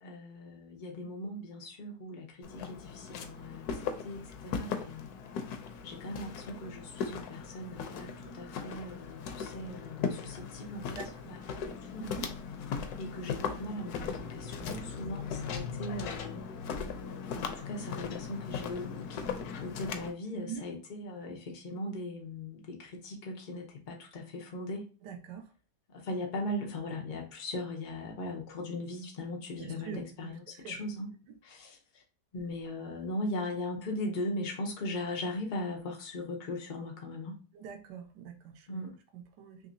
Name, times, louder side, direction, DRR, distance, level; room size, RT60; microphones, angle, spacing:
voice 1, 0.0-5.1 5.8-11.0 11.3-12.2 13.0-16.4 17.1-24.9 25.9-31.1 31.4-32.0 32.3-37.4 38.7-38.9, left 1 dB, 90° left, 0 dB, 0.4 m, -39 dB
Walk footsteps, 2.4-20.1, left 6 dB, 70° left, 1.0 m, -38 dB
voice 2, 11.0-11.4 12.2-12.3 14.7-15.1 20.3-20.6 25.0-25.5 29.6-30.8 37.5-39.6, right 8 dB, 85° right, 6 dB, 1.3 m, -44 dB
3.6 x 3.0 x 2.6 m, 0.36 s
omnidirectional pair, 1.9 m